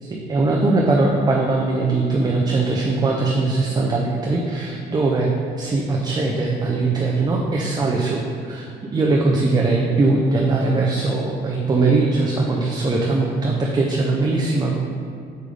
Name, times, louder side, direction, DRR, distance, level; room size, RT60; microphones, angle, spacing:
voice 1, 0.0-8.7 8.9-14.8, right 3 dB, 25° right, -2 dB, 0.7 m, -20 dB
6.7 x 5.2 x 5.0 m, 2.4 s
cardioid pair, 110°, 17 cm